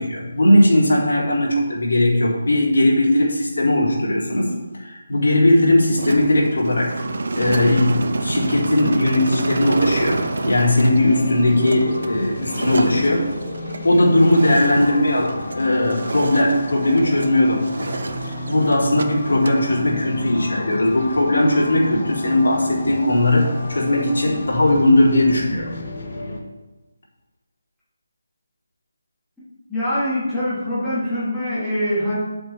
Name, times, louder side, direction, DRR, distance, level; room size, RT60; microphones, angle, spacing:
voice 1, 0.0-6.9 7.3-13.3 13.8-17.9 18.2-25.7, left 1 dB, 85° left, -4 dB, 3.8 m, -18 dB
sound 1, 6.0-15.6 15.9-17.3 17.6-19.1 19.3-19.6, right 3 dB, 55° right, 1.0 m, -28 dB
sound 2, 9.4-26.4, left 1 dB, 45° left, 2.3 m, -32 dB
voice 2, 29.7-32.2, left 1 dB, ahead, -16 dB, 3.6 m, -23 dB
9.5 x 7.7 x 4.4 m, 1.1 s
hypercardioid pair, 175°, 0 cm